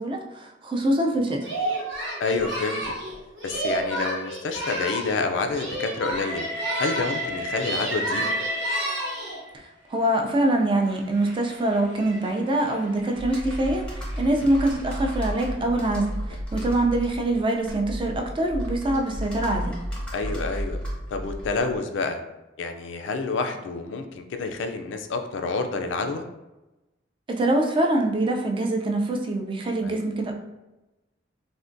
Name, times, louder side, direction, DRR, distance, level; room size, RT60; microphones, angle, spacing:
voice 1, 0.0-1.5 9.5-19.8 27.3-30.3, right 1 dB, 30° right, 2 dB, 0.4 m, -24 dB
Singing, 1.4-5.2 5.5-7.3 7.5-9.4, right 1 dB, 90° right, 1.1 m, -31 dB
voice 2, 2.2-2.8 3.4-6.5 6.8-8.3 14.4-14.5 16.6-16.8 20.1-20.8 21.1-22.2 22.6-26.3 29.8-30.0, left 4 dB, 85° left, 6 dB, 0.3 m, -28 dB
Train, 6.1-9.5 10.3-15.6, right 1 dB, 70° right, 0.7 m, -34 dB
Computer keyboard, 13.1-21.8, equal, 5° left, 0.6 m, -33 dB
3.4 x 2.2 x 2.5 m, 1.0 s
head